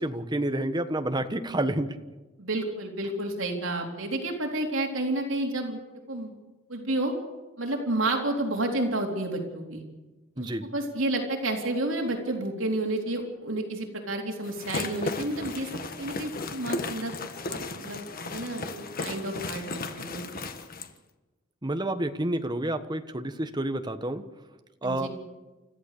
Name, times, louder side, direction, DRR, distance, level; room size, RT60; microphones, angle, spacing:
voice 1, 0.0-1.9 10.4-10.7 21.6-24.2 24.8-25.1, right 1 dB, 20° right, 8 dB, 1.4 m, -29 dB
voice 2, 2.4-5.8 6.1-6.3 6.7-7.1 7.6-9.8 10.4-15.7 16.0-17.2 17.5-20.2 24.8-25.1, right 1 dB, 75° right, 1 dB, 3.9 m, -30 dB
sound 1, 14.4-20.9, left 3 dB, 45° left, 1.6 m, -35 dB
29.5 x 14.5 x 6.8 m, 1.2 s
head